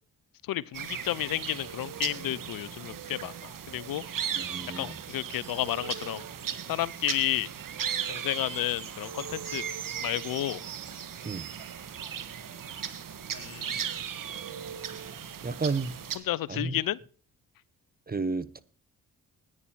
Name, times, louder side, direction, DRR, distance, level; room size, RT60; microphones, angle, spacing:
voice 1, 0.5-4.0 4.4-4.5 4.7-6.2 6.7-7.5 8.1-9.6 10.0-10.6 13.3-13.9 16.2-17.0, left 14 dB, 65° left, 0.6 m, -32 dB
sound 1, 0.7-16.2, right 8 dB, 55° right, 1.5 m, -37 dB
voice 2, 4.4-5.0 11.2-11.5 15.4-15.9 16.5-16.8 18.1-18.6, right 4 dB, 25° right, 1.1 m, -32 dB
9.7 x 9.7 x 7.3 m
supercardioid pair, 50°, 38 cm